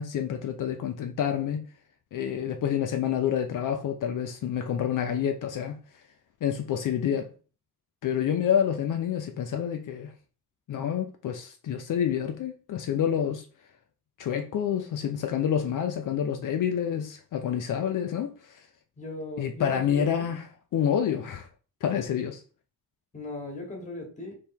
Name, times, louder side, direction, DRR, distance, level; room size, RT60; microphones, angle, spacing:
voice 1, 0.0-1.6 2.1-5.8 6.4-7.3 8.0-10.1 10.7-13.4 14.2-18.5 19.4-21.5 21.8-22.4, left 9 dB, 70° left, 0.6 m, -28 dB
voice 2, 19.0-20.3 20.8-20.9 23.1-24.3, left 2 dB, 20° left, 1.3 m, -38 dB
3.5 x 3.1 x 4.4 m
wide cardioid pair, 180°, 33 cm